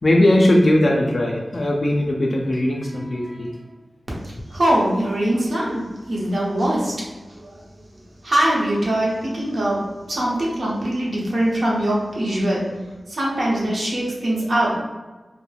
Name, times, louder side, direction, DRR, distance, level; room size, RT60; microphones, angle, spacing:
voice 1, 0.0-3.6, left 1 dB, 60° left, -1 dB, 0.4 m, -19 dB
voice 2, 4.5-6.9 7.3-7.6 8.2-9.8 10.1-12.6 13.1-14.8, right 1 dB, 75° right, -5 dB, 0.8 m, -22 dB
2.2 x 2.0 x 3.2 m, 1.2 s
cardioid pair, 45°, 0 cm